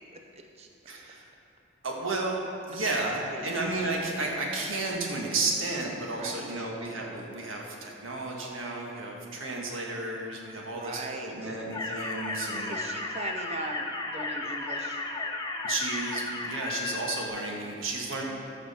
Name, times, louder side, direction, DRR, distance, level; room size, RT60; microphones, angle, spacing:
voice 1, 0.9-1.3 1.8-2.4 2.7-12.7 15.6-18.2, right 2 dB, 80° right, -1 dB, 1.5 m, -32 dB
voice 2, 3.0-3.6 6.1-6.5 10.7-11.6 12.5-15.0, right 2 dB, 30° right, 3 dB, 0.6 m, -39 dB
sound 1, 11.7-17.3, left 3 dB, 20° left, 0.6 m, -34 dB
14.5 x 6.1 x 4.3 m, 2.7 s
head